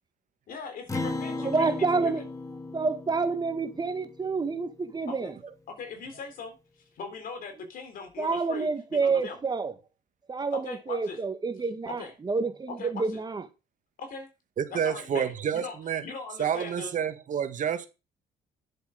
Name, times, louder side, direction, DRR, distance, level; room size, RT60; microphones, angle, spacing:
voice 1, 0.5-2.2 5.1-5.3 5.7-9.4 10.5-11.2 11.9-12.1 12.7-13.1 14.0-14.3 14.7-16.9, left 5 dB, 55° left, 3.7 m, -40 dB
Acoustic guitar, 0.9-5.6, left 2 dB, 20° left, 1.5 m, -37 dB
voice 2, 1.4-2.2 2.7-5.3 8.2-9.7 10.3-13.4, right 4 dB, 25° right, 1.6 m, -28 dB
voice 3, 14.6-16.0 16.4-17.9, right 8 dB, 50° right, 1.7 m, -29 dB
10.5 x 7.8 x 5.2 m
cardioid pair, 110°, 17 cm